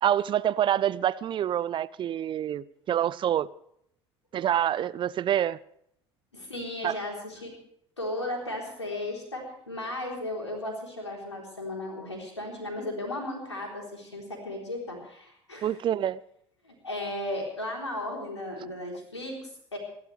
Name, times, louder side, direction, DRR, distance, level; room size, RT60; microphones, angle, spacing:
voice 1, 0.0-3.5 4.3-5.6 6.8-7.0 15.6-16.2, right 10 dB, 35° right, 0.5 m, -26 dB
voice 2, 6.3-7.6 8.0-15.8 16.6-19.8, left 1 dB, 85° left, 3.8 m, -35 dB
29.0 x 12.0 x 3.3 m
figure-of-eight pair, 60°, 14 cm